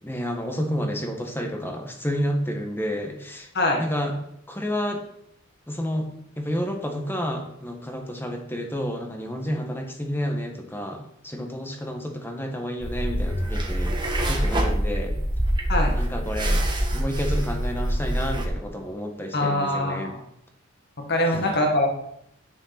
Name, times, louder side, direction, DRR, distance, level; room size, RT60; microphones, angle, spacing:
voice 1, 0.0-3.5 3.8-4.1 4.5-5.0 5.7-6.1 6.4-14.0 14.3-15.2 15.9-16.6 16.9-20.1 21.2-21.4, equal, 10° left, 3 dB, 1.5 m, -30 dB
sound 1, 12.8-18.5, right 1 dB, 20° right, 1.6 m, -25 dB
voice 2, 19.3-20.2 21.1-21.9, left 1 dB, 55° left, 2 dB, 1.8 m, -23 dB
10.5 x 6.5 x 5.9 m, 0.76 s
head